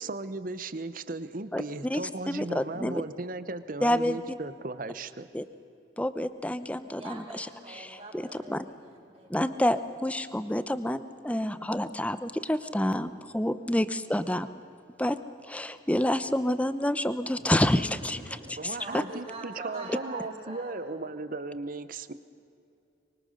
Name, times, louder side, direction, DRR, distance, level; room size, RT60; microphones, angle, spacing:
voice 1, 0.0-5.3 18.6-22.1, right 3 dB, 50° right, 13 dB, 0.9 m, -36 dB
voice 2, 1.5-2.0 2.3-3.0 3.8-4.2 5.3-5.4 6.0-8.6 9.3-14.5 15.0-15.2 15.4-18.2 18.6-19.0, left 1 dB, 10° left, 12 dB, 0.8 m, -28 dB
voice 3, 6.7-9.4 18.0-21.1, right 2 dB, 35° right, -3 dB, 5.3 m, -44 dB
24.5 x 23.5 x 6.6 m, 2.6 s
head